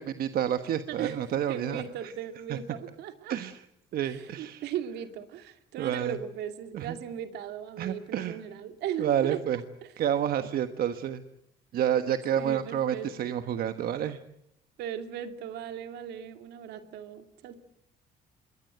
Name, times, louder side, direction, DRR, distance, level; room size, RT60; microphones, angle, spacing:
voice 1, 0.0-1.8 2.5-2.6 3.3-3.5 3.9-4.6 5.8-6.2 6.7-6.9 7.8-8.4 9.0-9.6 10.0-11.2 11.7-14.2, right 10 dB, 60° right, 10 dB, 1.3 m, -29 dB
voice 2, 0.9-3.4 4.0-9.9 12.4-13.4 14.8-17.6, right 9 dB, 80° right, 8 dB, 2.5 m, -38 dB
26.5 x 22.0 x 7.9 m, 0.76 s
cardioid pair, 110°, 17 cm